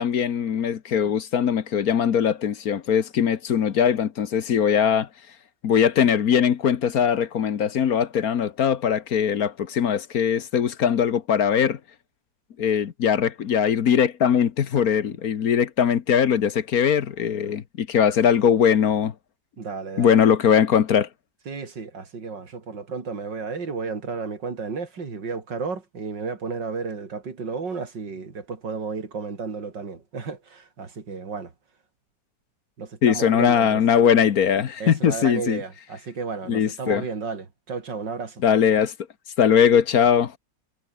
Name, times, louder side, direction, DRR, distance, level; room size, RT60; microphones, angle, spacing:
voice 1, 0.0-5.1 5.6-11.8 12.6-19.1 20.0-21.1 33.0-35.6 36.5-37.0 38.4-38.9 39.4-40.3, left 8 dB, 60° left, 1.5 m, -20 dB
voice 2, 19.6-20.2 21.5-31.5 32.8-33.8 34.8-38.4, right 5 dB, 85° right, 3.7 m, -33 dB
omnidirectional pair, 1.9 m